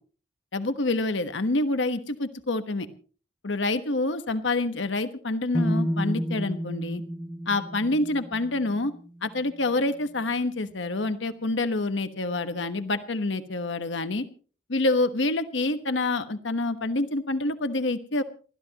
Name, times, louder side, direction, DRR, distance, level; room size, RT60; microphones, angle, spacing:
voice 1, 0.5-2.9 3.4-7.0 7.5-8.9 9.2-14.2 14.7-18.2, left 2 dB, 85° left, 10 dB, 1.2 m, -27 dB
sound 1, 5.5-9.5, equal, 5° right, 4.7 m, -31 dB
29.0 x 13.0 x 3.0 m, 0.40 s
head